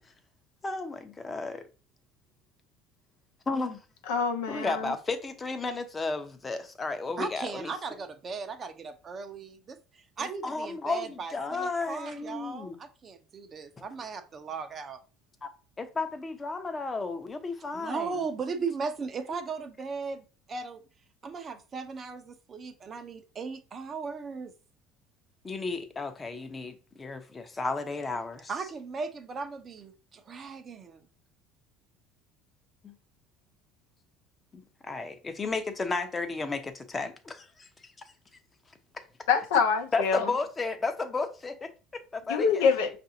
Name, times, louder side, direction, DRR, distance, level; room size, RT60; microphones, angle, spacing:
voice 1, 0.6-1.6 3.5-3.8 4.5-7.7 10.2-12.8 15.4-15.5 15.8-18.2 25.4-28.5 32.8-32.9 34.5-37.7 39.9-42.6, left 3 dB, 25° left, 0.7 m, -33 dB
voice 2, 4.1-4.9 39.3-40.3 42.3-42.9, left 6 dB, 80° left, 0.6 m, -25 dB
voice 3, 7.2-9.8 10.2-15.0 17.7-20.8 21.2-24.5 28.5-31.0, right 5 dB, 40° right, 0.6 m, -37 dB
5.4 x 2.6 x 2.7 m
hypercardioid pair, 80°, 0 cm